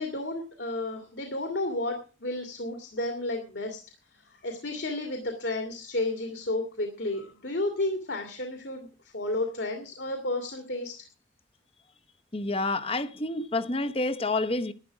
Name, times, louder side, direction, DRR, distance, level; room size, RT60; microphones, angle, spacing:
voice 1, 0.0-3.8 4.2-10.9, left 2 dB, 65° left, 2.2 m, -32 dB
voice 2, 12.3-14.7, left 2 dB, 30° left, 0.9 m, -28 dB
12.0 x 11.0 x 6.2 m
head